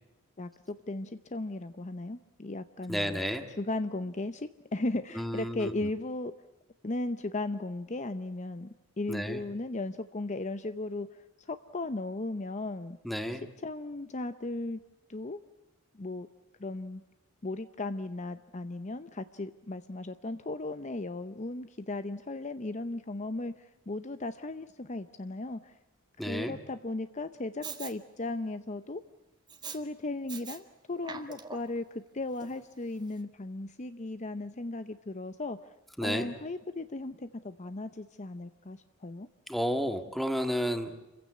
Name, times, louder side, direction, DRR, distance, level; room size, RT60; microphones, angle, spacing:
voice 1, 0.4-3.2 3.6-6.3 6.8-8.7 9.0-13.0 13.3-14.8 15.1-15.4 15.9-16.3 16.6-17.0 17.4-25.7 26.3-29.0 29.7-35.6 36.0-39.3, left 2 dB, 35° left, 11 dB, 0.7 m, -36 dB
voice 2, 2.9-3.4 5.1-5.7 9.1-9.4 13.0-13.4 26.2-26.5 36.0-36.3 39.5-40.9, equal, ahead, 7 dB, 1.7 m, -31 dB
Respiratory sounds, 27.6-27.9 29.5-29.8 30.3-30.6 31.0-31.8 32.4-32.5, right 5 dB, 20° right, 1.7 m, -42 dB
28.0 x 16.0 x 8.5 m, 1.1 s
head